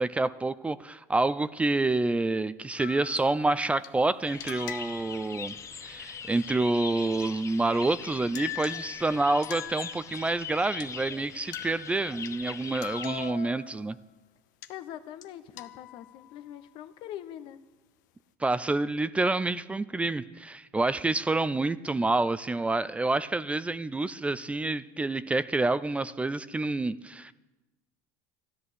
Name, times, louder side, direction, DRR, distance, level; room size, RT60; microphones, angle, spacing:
voice 1, 0.0-5.5 5.8-14.0 18.4-27.3, right 2 dB, 15° right, 16 dB, 0.5 m, -28 dB
sound 1, 2.8-3.9 4.4-5.3 8.0-8.1 8.3-10.4 10.8-10.9 11.5-13.9 14.6-14.7 15.2-15.3 15.6-16.6, left 13 dB, 85° left, 0.9 m, -42 dB
sound 2, 4.3-13.3, left 6 dB, 30° left, 1.0 m, -41 dB
voice 2, 14.7-17.6, left 11 dB, 65° left, 12 dB, 1.1 m, -43 dB
13.0 x 11.0 x 8.3 m, 1.1 s
supercardioid pair, 95°, 9 cm